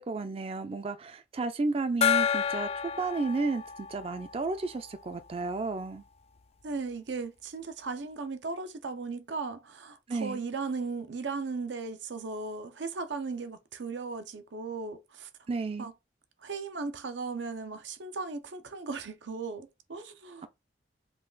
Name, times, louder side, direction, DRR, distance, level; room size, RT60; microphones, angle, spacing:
voice 1, 0.0-2.7 3.0-6.0 10.1-10.4 15.5-15.9, right 3 dB, 30° right, 0.4 m, -32 dB
Gong, 2.0-5.3, left 8 dB, 35° left, 0.3 m, -30 dB
voice 2, 6.6-15.3 15.8-15.9 16.4-20.5, right 4 dB, 85° right, 0.7 m, -37 dB
5.5 x 2.4 x 3.8 m
head